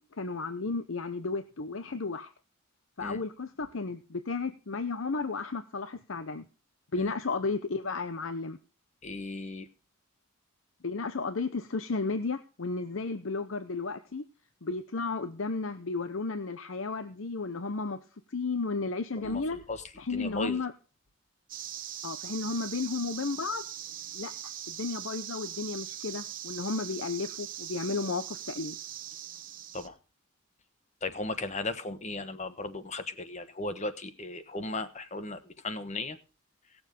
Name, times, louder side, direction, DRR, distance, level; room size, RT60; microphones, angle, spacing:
voice 1, 0.0-2.3 3.0-6.4 6.9-8.6 10.8-14.2 14.6-18.0 18.3-19.6 20.0-20.7 22.0-23.6 24.1-24.3 24.7-28.8, left 4 dB, 70° left, 0.8 m, -33 dB
voice 2, 9.0-9.7 19.2-20.6 29.7-30.0 31.0-36.2, left 2 dB, 35° left, 1.1 m, -36 dB
sound 1, 21.5-29.9, right 11 dB, 40° right, 1.0 m, -41 dB
18.5 x 7.2 x 5.3 m
head